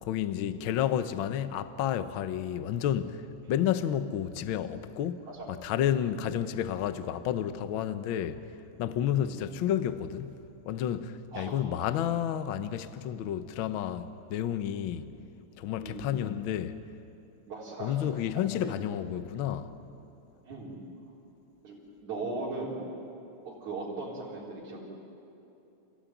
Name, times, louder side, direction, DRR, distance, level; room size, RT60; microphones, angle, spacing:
voice 1, 0.0-5.2 5.5-8.5 8.8-10.4 10.7-15.1 15.6-16.8 17.8-19.7, left 10 dB, 85° left, 1.1 m, -31 dB
voice 2, 15.8-16.2 17.5-17.9 18.6-18.7 20.5-20.8 21.6-22.8 23.5-24.8, right 3 dB, 70° right, 5.4 m, -38 dB
29.0 x 16.5 x 9.4 m
omnidirectional pair, 3.5 m